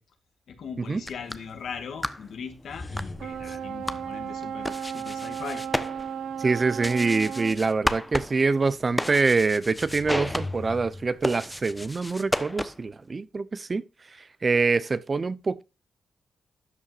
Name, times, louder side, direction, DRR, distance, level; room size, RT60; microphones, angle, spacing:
voice 1, 0.5-5.6, left 6 dB, 75° left, 2.4 m, -39 dB
sound 1, 0.9-13.0, left 1 dB, 10° left, 0.9 m, -34 dB
sound 2, 2.6-5.1 9.6-11.9, left 2 dB, 25° left, 1.4 m, -41 dB
sound 3, 3.2-7.6, right 8 dB, 80° right, 1.0 m, -35 dB
voice 2, 6.4-13.8 14.4-15.6, right 4 dB, 40° right, 0.8 m, -25 dB
12.5 x 8.7 x 2.5 m
cardioid pair, 80°, 0 cm